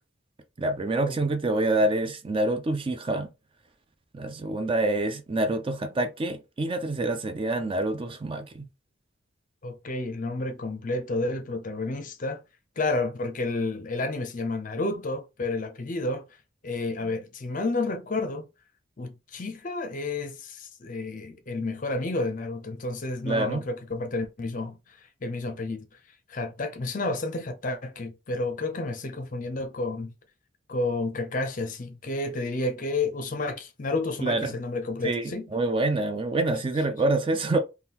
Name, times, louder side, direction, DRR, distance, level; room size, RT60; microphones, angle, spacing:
voice 1, 0.6-3.3 4.1-8.7 23.3-23.6 34.2-34.5 35.0-37.6, right 2 dB, 25° right, 0.3 m, -26 dB
voice 2, 9.6-12.4 12.8-16.2 16.6-18.5 19.0-25.9 26.3-30.1 30.7-35.5, left 2 dB, 40° left, 0.5 m, -31 dB
3.6 x 2.2 x 2.8 m
head